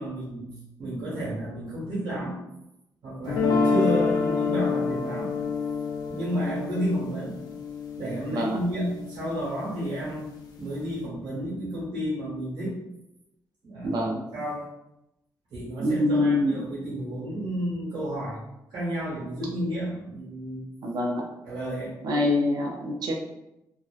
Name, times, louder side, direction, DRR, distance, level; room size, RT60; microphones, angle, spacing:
voice 1, 0.0-2.4 3.0-5.3 6.1-7.4 8.0-10.3 10.6-12.8 13.6-14.0 14.3-14.7 15.5-18.4 18.7-20.7 21.4-22.0, right 1 dB, 90° right, -7 dB, 1.2 m, -31 dB
sound 1, 3.3-9.4, left 5 dB, 65° left, 0.4 m, -27 dB
voice 2, 13.8-14.2 15.8-16.7 20.8-21.2 22.0-23.1, left 1 dB, 70° right, 0 dB, 0.4 m, -25 dB
2.6 x 2.1 x 2.3 m, 0.88 s
cardioid pair, 120°, 7 cm